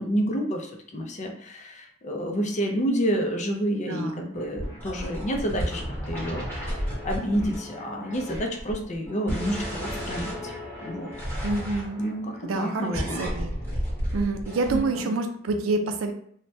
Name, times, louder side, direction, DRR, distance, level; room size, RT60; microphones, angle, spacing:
voice 1, 0.0-10.5 10.8-11.1 12.0-13.3 14.7-15.1, equal, 35° left, 3 dB, 0.5 m, -29 dB
voice 2, 3.8-4.3 11.4-12.0 12.4-13.5 14.1-16.1, right 3 dB, 80° right, 6 dB, 0.4 m, -28 dB
sound 1, 4.3-15.0, equal, 10° left, 1.0 m, -33 dB
3.2 x 2.1 x 2.7 m, 0.62 s
head